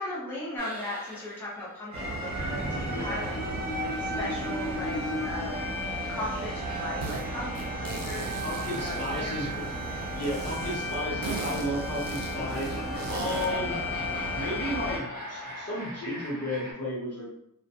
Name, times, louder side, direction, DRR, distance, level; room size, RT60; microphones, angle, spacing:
voice 1, 0.0-3.6 4.0-5.7 6.1-8.4 8.7-9.7 13.4-13.8, left 1 dB, 5° left, -8 dB, 0.7 m, -38 dB
sound 1, 0.6-16.7, left 1 dB, 25° left, 1.1 m, -39 dB
sound 2, 1.9-15.0, equal, 55° right, 0.8 m, -34 dB
voice 2, 2.9-3.3 8.4-9.5 10.1-13.8 14.3-17.3, equal, 50° left, -6 dB, 0.9 m, -33 dB
sound 3, 7.0-7.2 7.5-9.7 10.2-13.6, right 4 dB, 85° right, 0.5 m, -40 dB
2.2 x 2.2 x 2.7 m, 0.73 s
wide cardioid pair, 150°, 33 cm